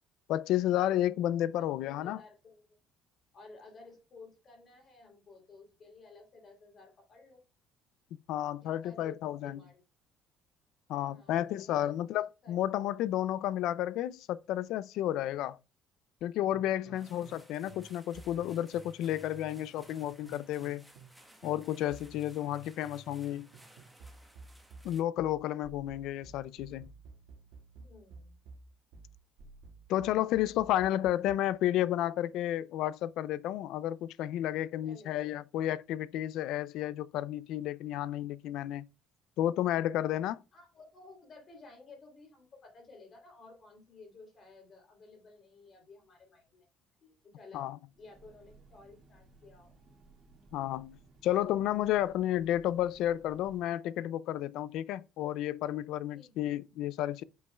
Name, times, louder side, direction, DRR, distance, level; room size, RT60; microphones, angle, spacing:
voice 1, 0.3-2.2 8.3-9.6 10.9-15.6 16.2-20.8 21.4-23.5 24.8-26.9 29.9-38.8 39.4-40.4 47.5-47.8 50.5-51.0 51.2-57.2, left 12 dB, 65° left, 0.4 m, -32 dB
voice 2, 1.8-2.8 3.3-7.4 8.6-9.8 11.0-12.6 16.7-17.1 27.8-28.4 34.8-35.2 40.5-46.7 47.0-47.7 48.0-49.8 56.1-56.3, left 3 dB, 30° left, 3.1 m, -55 dB
sound 1, 16.5-17.4 17.7-21.2 21.4-31.5, right 4 dB, 85° right, 1.8 m, -53 dB
sound 2, 16.9-25.0, equal, ahead, 1.1 m, -59 dB
Train, 47.9-53.6, right 3 dB, 40° right, 2.3 m, -60 dB
7.8 x 5.4 x 2.3 m
cardioid pair, 165°, 0 cm